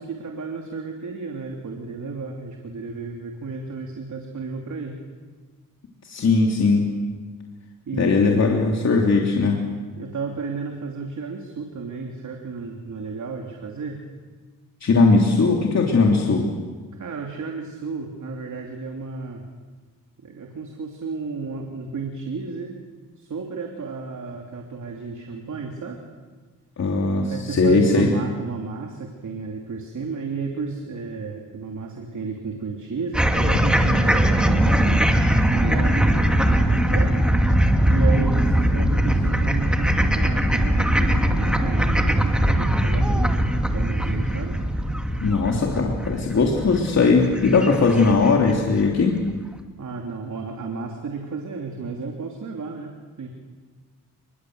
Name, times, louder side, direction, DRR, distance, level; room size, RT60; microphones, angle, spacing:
voice 1, 0.0-5.0 7.9-8.6 10.0-14.0 17.0-19.4 20.2-22.7 23.2-26.0 27.3-37.1 37.4-43.3 43.7-44.6 49.8-53.3, right 4 dB, 60° right, 1 dB, 3.1 m, -32 dB
voice 2, 6.1-6.8 8.0-9.6 14.8-16.5 26.8-28.1 45.2-49.2, left 4 dB, 50° left, 0 dB, 3.1 m, -19 dB
sound 1, 33.1-48.5, right 1 dB, 5° right, 2.5 m, -21 dB
29.5 x 22.0 x 8.0 m, 1.4 s
wide cardioid pair, 115°, 34 cm